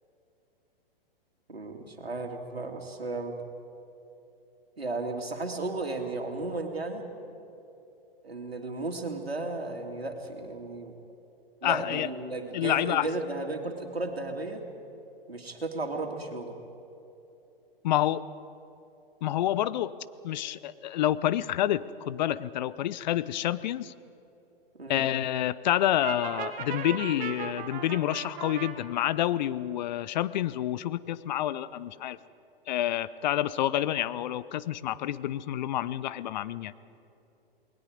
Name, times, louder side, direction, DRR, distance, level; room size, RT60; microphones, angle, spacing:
voice 1, 1.5-3.4 4.8-7.1 8.2-11.0 11.6-14.6 15.3-16.6 24.7-25.1, right 2 dB, 90° right, 2 dB, 2.7 m, -34 dB
voice 2, 11.6-12.1 12.5-13.1 17.8-18.3 19.2-19.9 20.2-23.9 24.9-32.2 32.7-36.7, left 12 dB, 50° left, 17 dB, 0.8 m, -28 dB
Brass instrument, 26.0-28.7, right 7 dB, 30° right, 2.1 m, -36 dB
28.5 x 20.5 x 5.2 m, 2.9 s
figure-of-eight pair, 120°, 30 cm